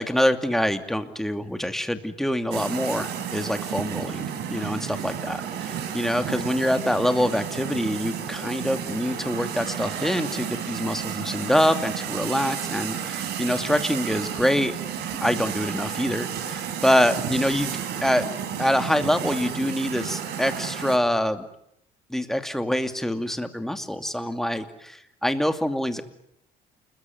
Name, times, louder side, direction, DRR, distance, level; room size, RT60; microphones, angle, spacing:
voice 1, 0.0-14.7 15.1-18.3 18.6-21.4 22.1-26.0, equal, ahead, 8 dB, 2.5 m, -25 dB
sound 1, 2.5-21.0, right 8 dB, 75° right, 4.4 m, -32 dB
29.0 x 21.5 x 9.4 m, 0.75 s
cardioid pair, 110°, 17 cm